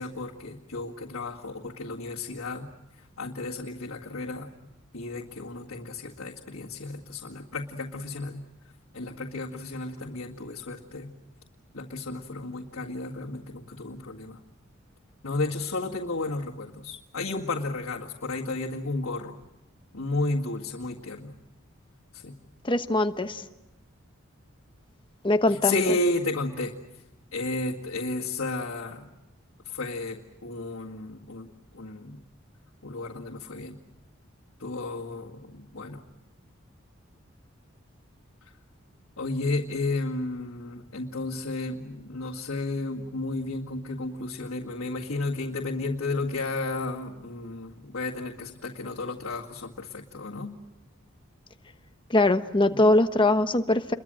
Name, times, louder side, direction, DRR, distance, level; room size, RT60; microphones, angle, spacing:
voice 1, 0.0-2.7 3.2-8.5 8.9-11.1 11.7-14.4 15.2-19.4 19.9-21.4 22.1-22.4 25.5-26.7 27.3-29.1 29.6-32.2 32.8-33.8 34.6-36.0 39.2-50.6 52.7-52.8, left 2 dB, 90° left, -4 dB, 2.0 m, -33 dB
voice 2, 22.6-23.4 25.2-25.7 52.1-53.9, left 2 dB, 25° left, 8 dB, 1.2 m, -22 dB
29.5 x 22.5 x 7.8 m, 0.98 s
head